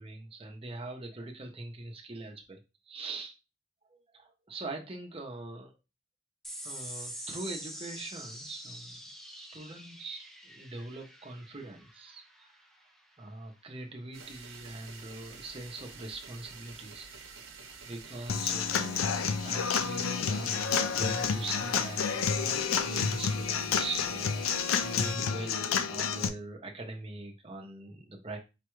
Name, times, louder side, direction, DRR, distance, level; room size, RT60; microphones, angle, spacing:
voice 1, 0.0-2.6 2.9-3.3 3.9-5.8 6.6-8.9 9.3-12.5 13.2-17.1 17.9-19.1 19.4-24.5 24.8-28.4, right 2 dB, 30° right, 3 dB, 0.8 m, -42 dB
sound 1, 6.4-13.2, equal, ahead, 0.4 m, -45 dB
sound 2, 14.1-25.1, right 5 dB, 80° right, 1.0 m, -48 dB
Human voice / Acoustic guitar / Drum, 18.3-26.3, left 6 dB, 85° left, 0.4 m, -30 dB
5.2 x 2.3 x 3.1 m, 0.27 s
head